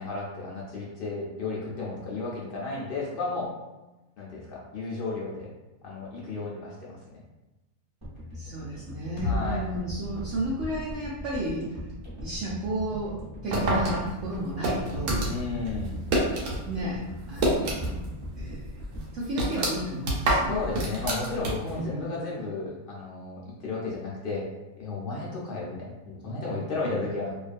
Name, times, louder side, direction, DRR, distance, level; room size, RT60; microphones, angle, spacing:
voice 1, 0.0-3.5 4.2-5.5 5.8-7.2 9.2-9.6 15.2-15.9 20.5-24.4 24.8-27.3, left 3 dB, 60° left, -5 dB, 0.6 m, -33 dB
sound 1, 8.0-20.3 20.6-20.8, equal, 25° right, 0.8 m, -40 dB
voice 2, 8.3-11.7 12.2-13.2 13.4-15.2 16.6-17.0 17.3-18.1 18.4-18.6 19.1-20.6 21.7-22.1, right 1 dB, 65° right, -7 dB, 0.8 m, -32 dB
sound 2, 9.2-13.0, left 3 dB, 80° left, 1.1 m, -38 dB
sound 3, 13.5-16.6 16.9-18.1 18.4-18.5 19.0-21.8, right 1 dB, 85° right, 1.2 m, -27 dB
2.5 x 2.3 x 2.5 m, 1.0 s
omnidirectional pair, 1.5 m